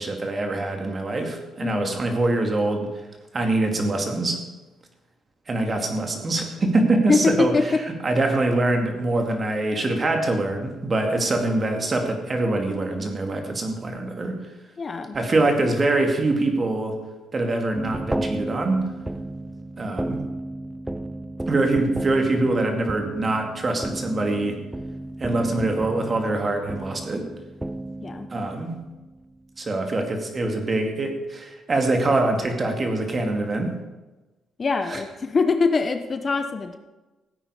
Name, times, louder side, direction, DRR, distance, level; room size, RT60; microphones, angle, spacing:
voice 1, 0.0-2.9 3.3-4.4 5.5-7.5 8.0-14.4 15.1-17.0 17.3-18.9 19.8-20.2 21.5-24.6 25.2-27.3 28.3-28.7 29.6-33.7 34.9-35.0, right 2 dB, 35° right, 4 dB, 2.5 m, -24 dB
voice 2, 1.6-2.0 7.1-7.8 14.8-15.2 28.0-28.3 34.6-36.8, left 4 dB, 35° left, 8 dB, 1.0 m, -23 dB
sound 1, 17.7-29.3, right 1 dB, 10° right, 0.5 m, -33 dB
16.0 x 8.9 x 5.0 m, 1.1 s
cardioid pair, 90°, 0 cm